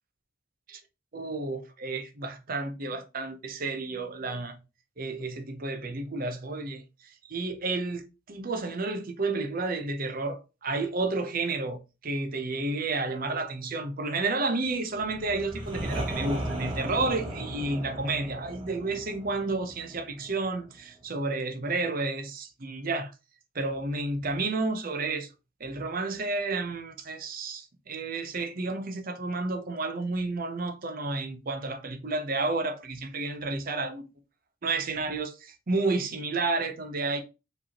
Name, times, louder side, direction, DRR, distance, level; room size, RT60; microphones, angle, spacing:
voice 1, 1.1-4.6 5.0-8.0 8.3-23.1 23.5-25.3 25.6-34.0 34.6-37.2, right 3 dB, 45° right, 0.7 m, -31 dB
sound 1, 14.9-20.7, right 1 dB, 25° right, 1.2 m, -36 dB
4.9 x 3.3 x 2.9 m
head